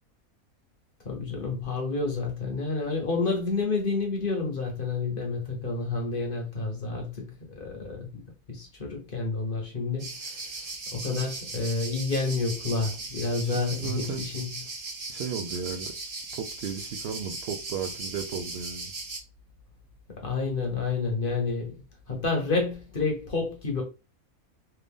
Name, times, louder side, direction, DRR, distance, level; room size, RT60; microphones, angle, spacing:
voice 1, 1.0-8.2 8.5-10.4 10.9-14.5 20.2-21.8 22.1-23.8, left 3 dB, 40° left, 1.0 m, -29 dB
sound 1, 10.0-19.2, right 3 dB, 50° right, 1.4 m, -38 dB
voice 2, 13.4-14.3 15.1-15.9 16.3-18.9, right 7 dB, 70° right, 0.6 m, -35 dB
3.4 x 2.5 x 3.5 m
omnidirectional pair, 1.5 m